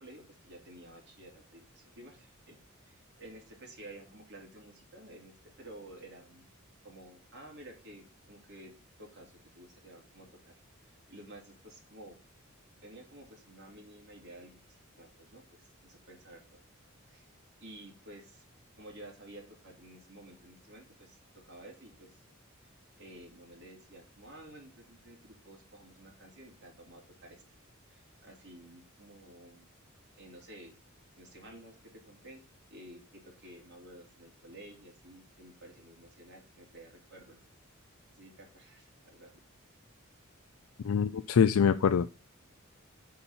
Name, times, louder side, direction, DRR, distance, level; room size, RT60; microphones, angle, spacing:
voice 1, 0.0-6.5 6.8-8.7 9.0-10.5 10.8-12.2 12.8-14.6 15.0-16.6 17.0-17.3 17.6-18.4 18.8-21.2 21.4-22.2 22.6-27.4 27.9-29.7 30.2-30.7 31.2-31.8 32.1-32.4 32.7-37.4 38.1-39.3, right 1 dB, 55° right, 0 dB, 3.1 m, -52 dB
voice 2, 40.8-42.1, left 7 dB, 75° left, 10 dB, 0.4 m, -24 dB
8.5 x 4.2 x 5.5 m, 0.31 s
head